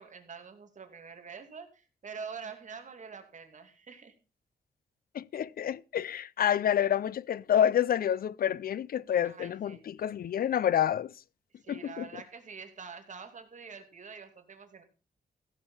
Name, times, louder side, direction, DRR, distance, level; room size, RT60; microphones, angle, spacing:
voice 1, 0.0-4.1 9.2-9.8 11.6-14.8, right 5 dB, 50° right, 2.6 m, -46 dB
voice 2, 5.1-11.1 11.7-12.1, left 10 dB, 60° left, 0.6 m, -28 dB
15.5 x 6.8 x 5.6 m
cardioid pair, 105°, 17 cm